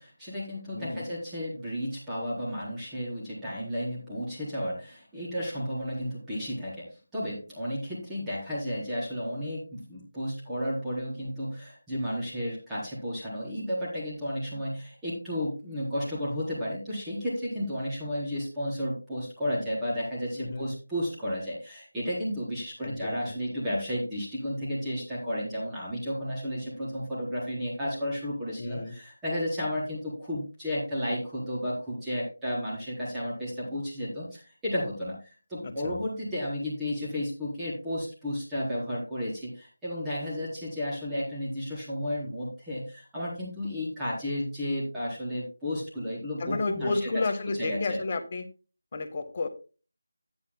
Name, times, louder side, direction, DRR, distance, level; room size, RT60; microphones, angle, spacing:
voice 1, 0.0-47.2 47.6-48.0, equal, 5° right, -8 dB, 4.0 m, -33 dB
voice 2, 0.7-1.1 20.4-20.7 22.8-23.3 28.6-28.9 35.6-35.9 46.4-48.5 48.9-49.5, left 3 dB, 35° left, 8 dB, 1.3 m, -32 dB
13.0 x 9.9 x 2.2 m, 0.34 s
figure-of-eight pair, 165°, 0 cm